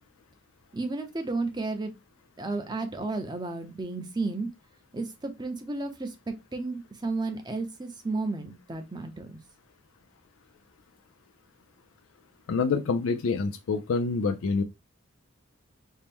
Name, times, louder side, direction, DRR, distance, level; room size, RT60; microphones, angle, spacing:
voice 1, 0.7-1.9 2.4-4.5 4.9-9.4, right 3 dB, 20° right, 0.6 m, -33 dB
voice 2, 12.5-14.6, left 4 dB, 85° left, 0.4 m, -26 dB
4.3 x 2.1 x 3.5 m
head